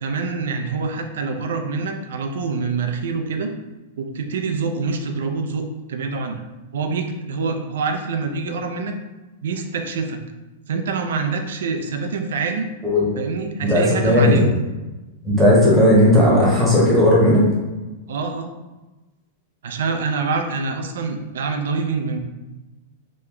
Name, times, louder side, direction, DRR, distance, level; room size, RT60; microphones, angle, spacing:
voice 1, 0.0-3.5 4.0-6.4 6.7-9.0 9.4-10.2 10.7-12.7 13.2-14.4 18.1-18.5 19.6-22.2, right 4 dB, 80° right, 5 dB, 0.4 m, -25 dB
voice 2, 13.6-14.5 15.2-17.4, left 1 dB, 5° right, -7 dB, 0.9 m, -15 dB
3.0 x 2.2 x 3.7 m, 1.1 s
supercardioid pair, 165°, 0 cm